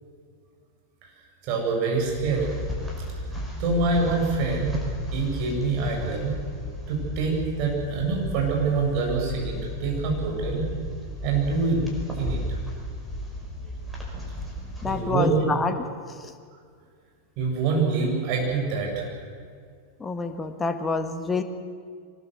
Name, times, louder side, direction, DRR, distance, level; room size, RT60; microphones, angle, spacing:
voice 1, 1.4-2.5 3.6-4.8 5.1-6.4 6.9-10.7 11.2-12.4 14.8-15.4 17.4-19.1, right 4 dB, 45° right, 0 dB, 7.6 m, -25 dB
sound 1, 1.9-15.0, equal, ahead, 5.8 m, -34 dB
voice 2, 14.8-16.3 20.0-21.4, left 4 dB, 15° left, 8 dB, 1.9 m, -28 dB
24.0 x 20.0 x 7.9 m, 2.1 s
figure-of-eight pair, 90°, 0 cm